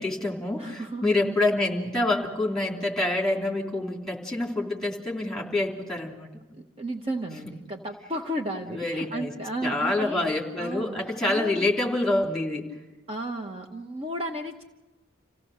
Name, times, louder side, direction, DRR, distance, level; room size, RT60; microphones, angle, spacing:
voice 1, 0.0-6.3 8.7-9.3 9.6-12.7, left 2 dB, ahead, -1 dB, 3.0 m, -27 dB
voice 2, 0.6-1.1 6.6-10.2 10.6-11.7 13.1-14.6, right 1 dB, 30° right, 3 dB, 1.0 m, -33 dB
27.5 x 16.5 x 6.5 m, 1.1 s
head